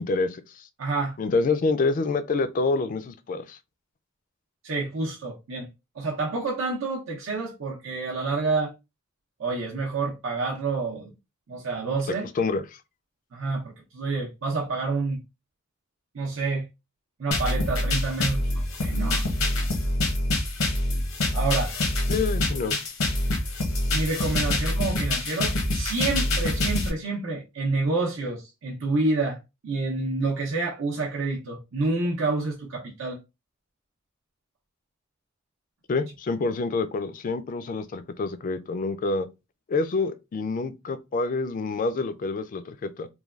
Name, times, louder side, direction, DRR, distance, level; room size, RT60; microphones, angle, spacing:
voice 1, 0.0-0.6 1.2-3.6 12.4-12.6 22.1-22.8 35.9-39.3 39.7-43.1, left 3 dB, 40° left, 0.3 m, -27 dB
voice 2, 0.8-1.2 4.6-5.7 5.9-8.7 9.4-11.1 11.5-12.3 13.3-15.2 16.1-16.7 17.2-19.2 21.3-21.7 23.9-33.2, right 3 dB, 70° right, 0.6 m, -28 dB
sound 1, 17.3-26.9, left 1 dB, 85° left, 0.8 m, -25 dB
3.2 x 2.2 x 2.3 m
head